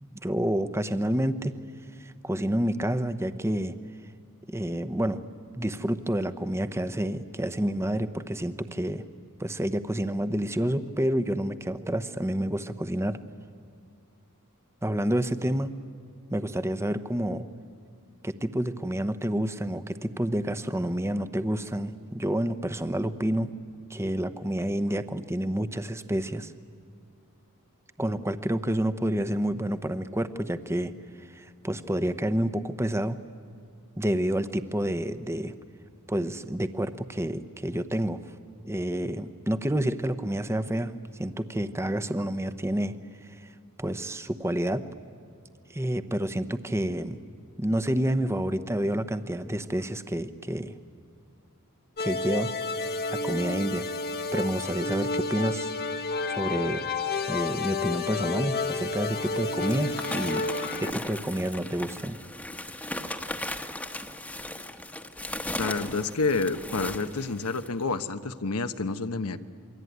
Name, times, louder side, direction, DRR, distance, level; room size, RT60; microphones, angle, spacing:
voice 1, 0.0-1.5 2.0-3.7 4.5-5.2 5.6-9.0 9.4-13.2 14.8-15.7 16.3-17.5 18.2-23.5 23.9-26.5 28.0-30.9 31.2-33.2 34.0-35.5 36.1-38.2 38.6-42.9 43.2-43.5 43.8-44.8 45.7-47.2 47.6-50.8 52.0-52.5 53.1-53.8 54.3-55.7 56.3-56.8 57.3-60.4 60.8-62.2, right 1 dB, 10° right, 11 dB, 0.9 m, -29 dB
sound 1, 52.0-60.9, left 3 dB, 45° left, 1.1 m, -30 dB
sound 2, 59.2-67.8, left 1 dB, 5° left, 1.2 m, -37 dB
voice 2, 65.6-69.4, left 3 dB, 80° left, 9 dB, 1.1 m, -29 dB
28.0 x 22.5 x 9.5 m, 2.3 s
head